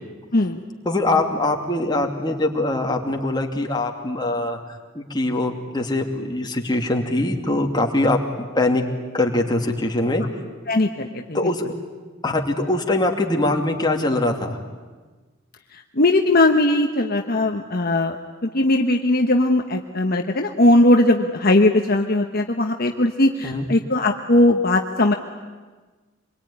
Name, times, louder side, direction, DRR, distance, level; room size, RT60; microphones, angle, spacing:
voice 1, 0.8-8.8 9.1-10.2 11.3-11.7 12.2-14.6 23.4-23.7, left 2 dB, 20° left, 1 dB, 2.7 m, -22 dB
voice 2, 10.7-11.5 15.7-18.2 18.4-25.1, left 1 dB, 50° left, 3 dB, 1.2 m, -19 dB
26.0 x 22.5 x 9.9 m, 1.3 s
head